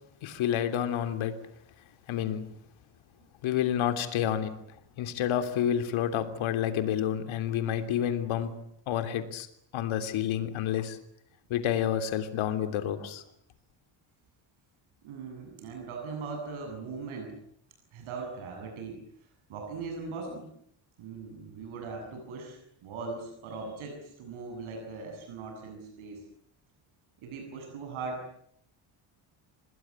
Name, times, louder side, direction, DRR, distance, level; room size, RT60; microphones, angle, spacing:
voice 1, 0.2-1.3 2.1-2.5 3.4-4.5 5.0-8.5 8.9-9.5 9.7-11.0 11.5-13.2, left 10 dB, 80° left, 9 dB, 3.2 m, -29 dB
voice 2, 15.0-17.4 17.9-19.0 19.5-20.5 21.0-26.2 27.2-28.2, right 4 dB, 90° right, 2 dB, 8.0 m, -39 dB
27.5 x 20.0 x 9.8 m, 0.71 s
cardioid pair, 155°, 47 cm